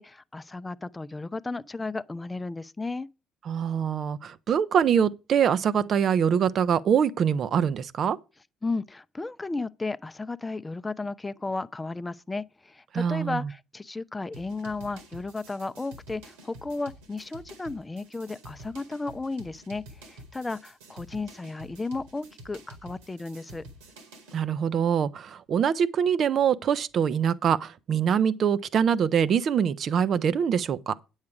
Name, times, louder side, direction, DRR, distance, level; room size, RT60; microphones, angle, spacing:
voice 1, 0.0-3.1 8.6-23.6, left 3 dB, 20° left, 0.5 m, -34 dB
voice 2, 3.5-8.2 12.9-13.4 24.3-30.9, right 8 dB, 55° right, 0.7 m, -24 dB
sound 1, 14.3-24.4, right 1 dB, 80° right, 2.1 m, -49 dB
9.5 x 7.3 x 4.9 m
hypercardioid pair, 50°, 0 cm